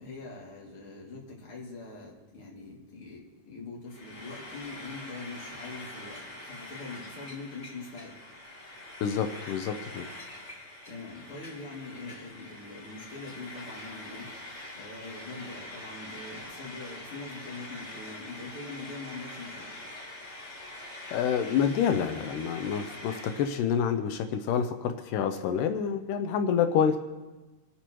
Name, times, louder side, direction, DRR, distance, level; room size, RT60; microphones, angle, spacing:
voice 1, 0.0-8.2 10.9-14.3 14.7-19.7, left 3 dB, 45° left, -3 dB, 3.1 m, -43 dB
Frying (food), 3.9-23.6, left 1 dB, 30° left, 1.6 m, -44 dB
voice 2, 9.0-10.1 21.1-27.0, left 7 dB, 85° left, 7 dB, 2.4 m, -28 dB
26.5 x 11.5 x 3.0 m, 1.1 s
omnidirectional pair, 3.7 m